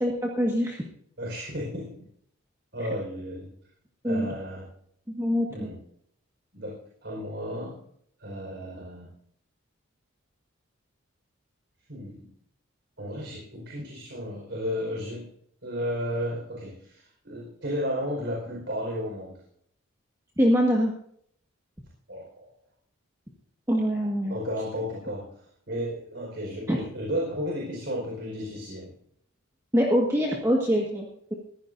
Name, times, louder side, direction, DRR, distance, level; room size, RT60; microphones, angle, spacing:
voice 1, 0.0-0.8 4.0-4.3 5.1-5.7 20.4-20.9 23.7-24.4 26.7-26.8 29.7-31.3, equal, 15° right, -2 dB, 1.7 m, -24 dB
voice 2, 1.2-2.0 2.7-3.5 4.0-4.7 5.5-5.8 6.5-7.8 8.2-9.1 11.9-12.3 13.0-15.3 15.6-19.4 22.1-22.5 24.3-25.4 25.7-28.9, equal, 55° right, -2 dB, 5.0 m, -33 dB
22.0 x 15.5 x 2.7 m, 0.66 s
head